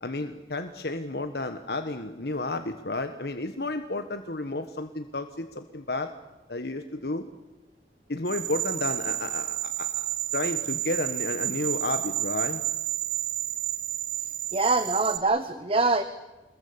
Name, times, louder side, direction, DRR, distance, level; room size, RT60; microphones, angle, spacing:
voice 1, 0.0-6.1 6.5-7.2 8.1-10.0 10.3-12.6, left 2 dB, 65° left, 7 dB, 1.4 m, -32 dB
sound 1, 8.3-15.2, right 14 dB, 50° right, 2.0 m, -31 dB
voice 2, 14.5-16.0, right 3 dB, 30° right, 10 dB, 1.1 m, -24 dB
26.0 x 21.5 x 8.7 m, 1.1 s
head